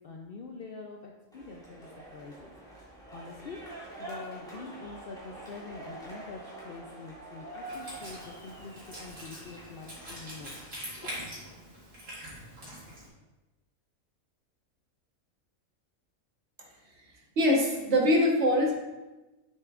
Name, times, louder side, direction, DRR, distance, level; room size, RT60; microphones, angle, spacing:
voice 1, 0.0-2.5 3.1-3.6 4.0-10.5 11.0-11.1, left 4 dB, 60° left, 1 dB, 0.6 m, -45 dB
sound 1, 1.3-10.6, right 1 dB, 5° left, 2.0 m, -46 dB
Wind instrument woodwind instrument, 7.6-13.1, equal, 90° right, 2.7 m, -44 dB
voice 2, 17.4-18.7, left 1 dB, 55° right, -1 dB, 1.4 m, -23 dB
6.8 x 6.7 x 2.4 m, 1.1 s
omnidirectional pair, 1.4 m